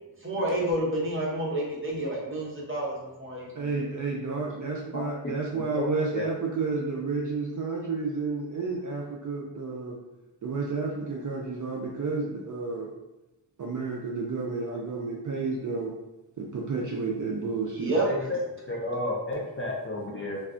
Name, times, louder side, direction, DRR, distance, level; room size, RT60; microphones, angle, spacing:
voice 1, 0.2-3.9 17.7-18.1, right 1 dB, 30° right, -5 dB, 0.9 m, -29 dB
voice 2, 3.6-10.0 10.4-12.9 13.6-15.9 16.4-18.0, right 4 dB, 45° right, -2 dB, 0.4 m, -31 dB
voice 3, 5.5-6.2 17.9-18.4 18.7-20.4, left 2 dB, 30° left, -3 dB, 0.5 m, -32 dB
2.4 x 2.3 x 3.6 m, 0.97 s
wide cardioid pair, 120°, 44 cm